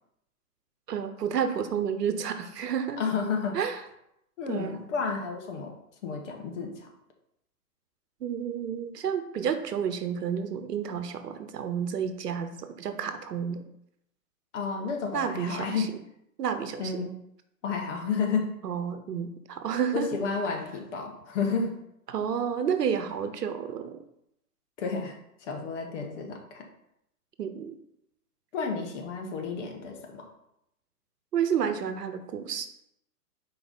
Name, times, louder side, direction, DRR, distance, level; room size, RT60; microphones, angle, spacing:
voice 1, 0.9-3.0 3.5-3.8 4.5-4.9 8.2-13.6 15.1-15.9 16.4-16.9 18.6-20.1 22.1-24.0 27.4-27.8 31.3-32.7, right 7 dB, 85° right, 9 dB, 0.9 m, -30 dB
voice 2, 3.0-3.6 4.4-5.7 6.0-6.9 14.5-15.9 16.8-17.1 17.6-18.5 19.9-21.8 24.8-25.2 25.4-26.6 28.5-30.3, left 5 dB, 50° left, 2 dB, 1.4 m, -31 dB
4.8 x 3.8 x 5.2 m, 0.79 s
hypercardioid pair, 130°, 46 cm